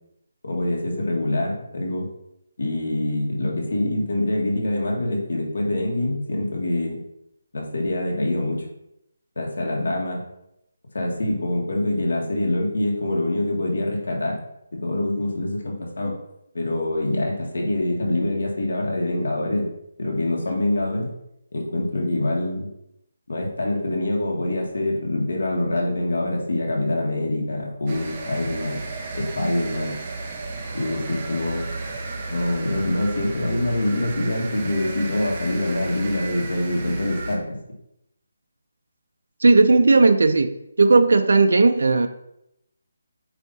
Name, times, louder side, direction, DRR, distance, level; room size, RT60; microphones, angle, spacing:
voice 1, 0.4-2.1 2.6-7.0 7.5-8.6 9.4-10.2 10.9-14.4 14.7-16.1 16.5-19.7 20.0-21.1 21.5-22.7 23.3-28.8 29.1-30.0 30.7-31.6 32.3-37.6, left 1 dB, 80° left, 0 dB, 1.8 m, -25 dB
sound 1, 27.9-37.4, right 3 dB, 20° right, 0.6 m, -34 dB
voice 2, 39.4-40.5 40.8-42.1, right 3 dB, 70° right, 7 dB, 0.5 m, -15 dB
8.2 x 2.8 x 4.1 m, 0.81 s
hypercardioid pair, 180°, 0 cm